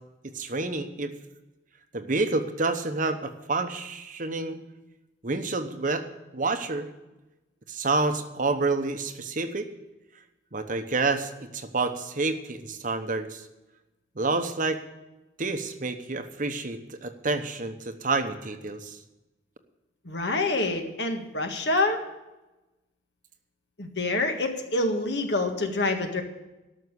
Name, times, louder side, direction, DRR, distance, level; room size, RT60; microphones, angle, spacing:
voice 1, 0.3-1.1 1.9-4.6 5.2-6.0 6.3-6.9 7.7-9.7 10.5-13.4 14.2-14.8 15.4-19.0, right 3 dB, 45° right, 8 dB, 1.0 m, -28 dB
voice 2, 20.0-22.0 23.8-26.2, left 2 dB, 65° left, 4 dB, 1.7 m, -26 dB
13.0 x 6.4 x 9.6 m, 1.0 s
head